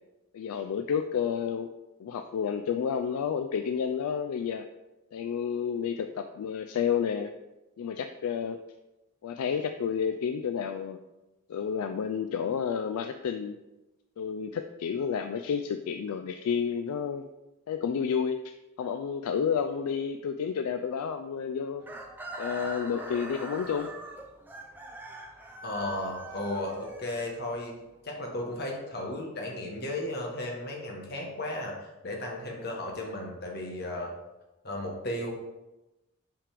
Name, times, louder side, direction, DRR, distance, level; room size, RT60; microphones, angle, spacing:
voice 1, 0.3-1.7 2.0-4.7 5.1-7.3 7.8-8.6 9.2-11.0 11.5-13.6 14.2-17.2 17.7-18.4 18.8-21.8 22.4-23.9, left 7 dB, 85° left, 8 dB, 0.3 m, -30 dB
Chicken rooster, 21.8-27.8, right 2 dB, 10° right, 0.5 m, -42 dB
voice 2, 25.6-27.8 28.0-34.1 34.6-35.3, left 1 dB, 45° left, 0 dB, 1.1 m, -35 dB
5.7 x 5.2 x 3.4 m, 1.0 s
head